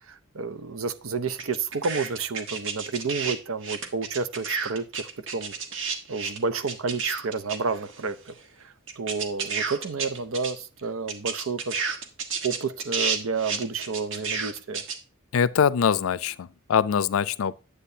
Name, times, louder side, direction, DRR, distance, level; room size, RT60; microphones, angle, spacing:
voice 1, 0.1-5.5 6.1-8.4 8.6-11.7 12.4-14.8, right 4 dB, 90° right, 0.7 m, -30 dB
sound 1, 1.4-3.4 3.6-8.0 8.3-8.4 8.9-10.5 10.8-10.9 11.1-15.0, right 5 dB, 70° right, 1.4 m, -30 dB
voice 2, 15.3-17.5, left 7 dB, 85° left, 0.4 m, -23 dB
10.0 x 8.1 x 2.7 m
head